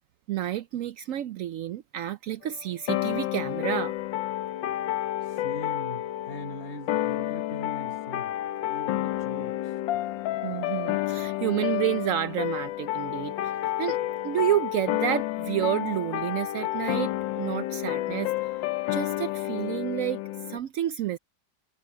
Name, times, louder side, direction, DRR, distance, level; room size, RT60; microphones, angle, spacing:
voice 1, 0.3-3.9 10.4-13.5 13.8-14.0 14.2-17.1 17.4-18.3 18.9-20.2 20.5-21.2, right 12 dB, 90° right, 0.7 m, -29 dB
sound 1, 2.9-20.6, left 14 dB, 90° left, 1.4 m, -30 dB
voice 2, 5.2-8.3 8.6-9.8, equal, 30° left, 7.7 m, -41 dB
omnidirectional pair, 2.0 m